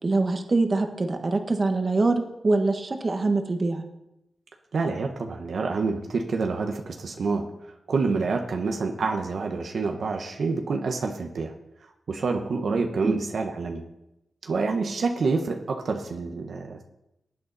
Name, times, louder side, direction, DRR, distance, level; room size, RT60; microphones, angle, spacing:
voice 1, 0.0-3.8 13.0-13.2, right 3 dB, 40° right, 5 dB, 1.5 m, -24 dB
voice 2, 4.7-7.5 7.9-11.5 12.1-13.8 14.4-16.8, right 4 dB, 70° right, 4 dB, 1.2 m, -27 dB
19.0 x 8.7 x 4.2 m, 0.86 s
cardioid pair, 85°, 0 cm